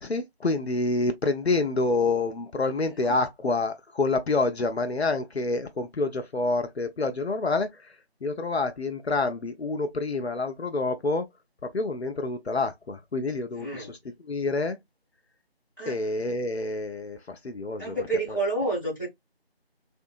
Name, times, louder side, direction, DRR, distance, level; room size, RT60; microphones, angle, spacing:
voice 1, 0.0-7.8 8.2-11.2 11.6-14.0 14.2-14.8 15.9-18.0 18.3-18.4, left 3 dB, 80° left, 0.7 m, -27 dB
voice 2, 13.5-14.0 15.8-16.0 17.8-19.1, right 2 dB, 20° left, 1.9 m, -29 dB
3.4 x 2.7 x 2.2 m
figure-of-eight pair, 170°, 31 cm